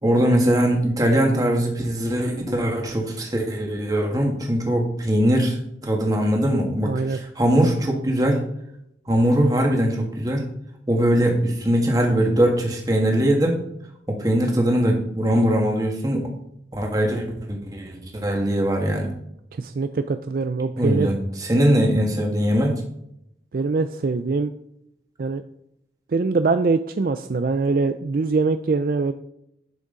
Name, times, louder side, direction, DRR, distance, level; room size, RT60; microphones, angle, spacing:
voice 1, 0.0-5.6 5.8-8.4 9.1-10.4 10.9-13.6 14.1-16.2 16.7-19.1 20.8-22.7, equal, 20° right, 1 dB, 1.7 m, -21 dB
voice 2, 6.8-7.2 19.6-21.1 23.5-24.5 25.2-25.4 26.1-29.1, right 4 dB, 50° right, 9 dB, 0.4 m, -23 dB
11.0 x 6.2 x 3.9 m, 0.76 s
head